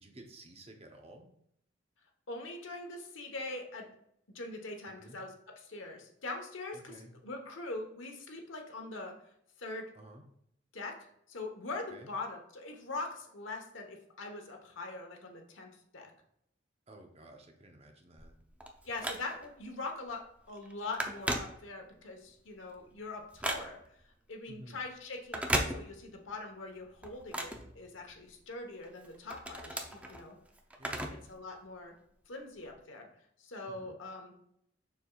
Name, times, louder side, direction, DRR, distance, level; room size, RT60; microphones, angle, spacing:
voice 1, 0.0-1.3 4.9-5.2 6.7-7.1 9.9-10.2 11.9-12.1 16.9-18.4 24.5-24.8 30.8-31.2 33.7-33.9, right 1 dB, 30° right, 3 dB, 0.8 m, -53 dB
voice 2, 2.3-3.9 4.3-5.3 5.7-6.9 7.2-9.1 9.6-9.8 10.7-10.9 11.3-16.1 18.8-20.2 20.5-23.8 24.3-30.4 31.3-31.9 32.3-33.1 33.4-34.3, left 2 dB, 85° left, 3 dB, 1.2 m, -42 dB
Telephone, 18.2-19.6 20.1-20.3 20.6-22.1 22.5-24.0 25.2-26.3 26.6-28.4 28.8-31.3 31.6-31.7 32.6-32.7, right 1 dB, 5° right, 0.6 m, -37 dB
7.0 x 5.8 x 2.4 m, 0.72 s
head